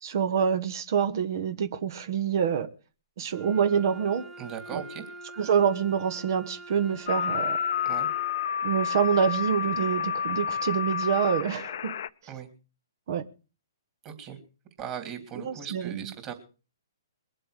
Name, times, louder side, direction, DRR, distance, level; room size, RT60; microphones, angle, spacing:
voice 1, 0.0-2.7 3.2-4.3 4.7-4.8 5.4-7.6 8.6-11.9 13.1-13.2 15.4-16.1, right 7 dB, 55° right, 1.2 m, -26 dB
Wind instrument woodwind instrument, 3.3-8.4, right 2 dB, 10° right, 1.8 m, -45 dB
voice 2, 4.4-5.0 7.8-8.1 12.3-12.5 14.0-14.4 14.8-16.3, right 8 dB, 30° right, 3.3 m, -38 dB
sound 1, 7.1-12.1, left 7 dB, 60° left, 0.7 m, -29 dB
21.5 x 7.7 x 6.6 m
hypercardioid pair, 135°, 2 cm